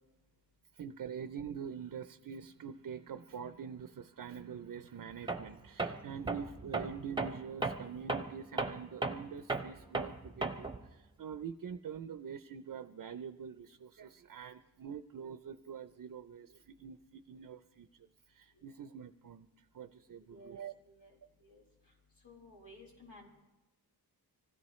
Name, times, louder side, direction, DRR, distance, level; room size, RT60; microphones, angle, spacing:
voice 1, 0.7-19.5 19.7-20.7, right 7 dB, 55° right, 10 dB, 0.5 m, -45 dB
Tools, 5.3-5.5 5.8-10.8, right 3 dB, 10° right, 0.7 m, -36 dB
voice 2, 20.3-21.6 22.2-23.3, left 1 dB, 90° left, -2 dB, 4.2 m, -56 dB
25.0 x 16.5 x 3.1 m, 1.1 s
wide cardioid pair, 175°, 40 cm